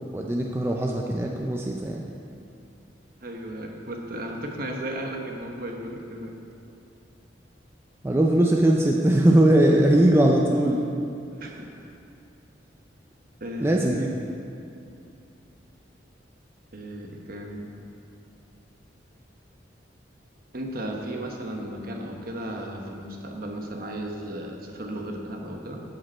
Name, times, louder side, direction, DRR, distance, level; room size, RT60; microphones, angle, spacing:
voice 1, 0.0-2.0 8.0-10.9 11.4-11.6 13.6-14.1, right 1 dB, 15° right, 0 dB, 0.4 m, -20 dB
voice 2, 3.2-6.3 9.7-9.8 11.4-11.7 13.4-14.0 16.7-17.7 20.5-25.8, right 1 dB, 50° right, 1 dB, 1.0 m, -35 dB
13.5 x 5.1 x 4.3 m, 2.6 s
head